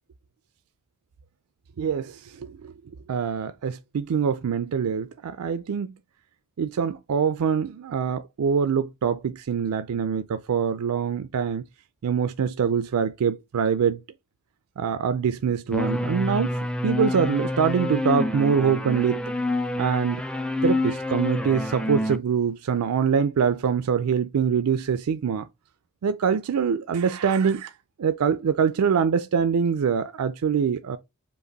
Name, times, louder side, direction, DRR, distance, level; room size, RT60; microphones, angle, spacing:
voice 1, 1.8-2.7 3.1-5.9 6.6-11.6 12.0-14.0 14.8-19.2 19.8-20.2 20.6-25.5 26.0-27.7 28.0-31.0, right 7 dB, 75° right, 0.4 m, -24 dB
sound 1, 15.7-22.2, left 2 dB, 5° left, 0.4 m, -27 dB
5.3 x 2.5 x 3.9 m
head